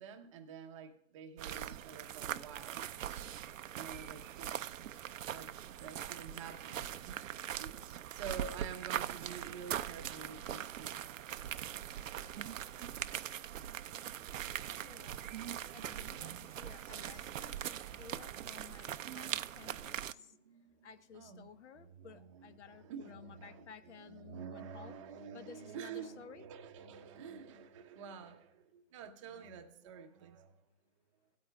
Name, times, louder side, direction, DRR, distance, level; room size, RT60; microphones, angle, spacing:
voice 1, 0.0-2.8 3.7-4.8 5.3-7.3 7.6-11.0 19.9-20.9 21.1-21.5 21.8-30.6, right 6 dB, 25° right, 0.8 m, -49 dB
sound 1, 1.4-20.1, right 10 dB, 65° right, 0.6 m, -41 dB
voice 2, 14.7-15.2 15.7-17.6 18.0-20.4 20.8-25.0 25.3-26.4 29.4-29.5, left 7 dB, 55° left, 1.0 m, -55 dB
18.0 x 8.7 x 2.2 m
hypercardioid pair, 155°, 42 cm